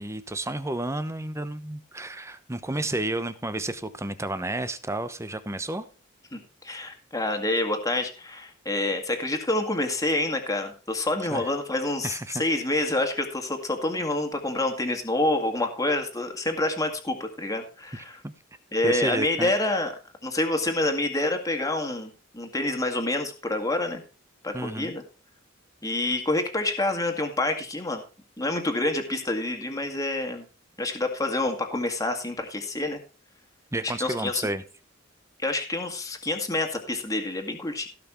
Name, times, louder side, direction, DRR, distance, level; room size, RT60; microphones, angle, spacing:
voice 1, 0.0-5.8 11.3-11.5 12.0-12.4 18.2-18.3 18.8-19.5 24.5-24.9 33.7-34.6, right 2 dB, 15° right, 12 dB, 0.9 m, -31 dB
voice 2, 6.3-18.2 18.7-19.9 20.2-24.0 24.4-25.0 25.8-28.0 28.4-30.4 30.8-33.0 33.8-34.5 35.4-37.9, left 2 dB, 15° left, 4 dB, 2.0 m, -27 dB
16.5 x 5.9 x 4.5 m, 0.35 s
head